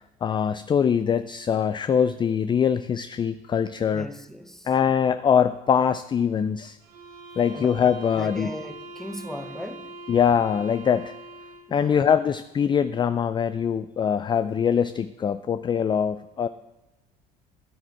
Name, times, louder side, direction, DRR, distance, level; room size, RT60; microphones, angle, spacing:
voice 1, 0.0-4.1 4.7-6.8 7.4-8.5 10.1-11.1 11.7-16.5, left 7 dB, 25° left, 0.3 m, -23 dB
voice 2, 3.9-4.7 7.5-7.7 8.1-10.0 11.7-12.0, equal, ahead, 0.9 m, -37 dB
sound 1, 6.8-11.8, right 2 dB, 85° right, 1.1 m, -42 dB
9.8 x 8.7 x 4.8 m
hypercardioid pair, 70°, 20 cm